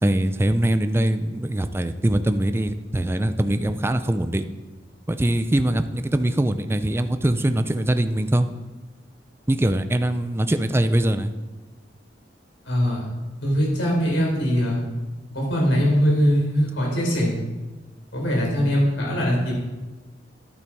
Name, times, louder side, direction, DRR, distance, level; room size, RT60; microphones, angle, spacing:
voice 1, 0.0-4.4 5.1-8.5 9.5-11.3, right 1 dB, 15° right, 9 dB, 0.4 m, -22 dB
voice 2, 12.6-13.1 13.4-14.8 15.3-17.3 18.1-19.5, equal, 85° left, -2 dB, 4.2 m, -21 dB
11.0 x 8.8 x 4.7 m, 1.2 s
head